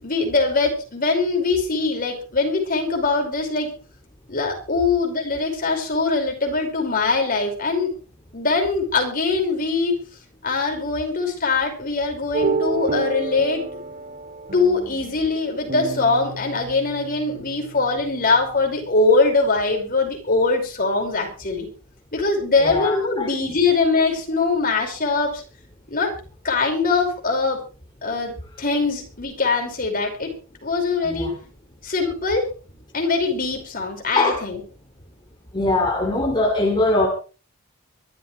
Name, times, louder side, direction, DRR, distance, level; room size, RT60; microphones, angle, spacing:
voice 1, 0.0-3.7 4.3-7.9 8.3-9.9 10.4-13.6 14.5-21.7 22.1-25.4 25.9-26.1 26.4-27.6 28.0-30.3 30.6-31.3 31.8-32.5 32.9-34.6, left 3 dB, 40° left, 2 dB, 5.4 m, -22 dB
sound 1, 12.3-18.9, right 3 dB, 40° right, 1.9 m, -30 dB
voice 2, 22.6-23.3 31.0-31.4 34.2-34.4 35.5-37.1, left 2 dB, 20° left, 1 dB, 2.6 m, -21 dB
23.5 x 13.5 x 3.3 m, 0.35 s
head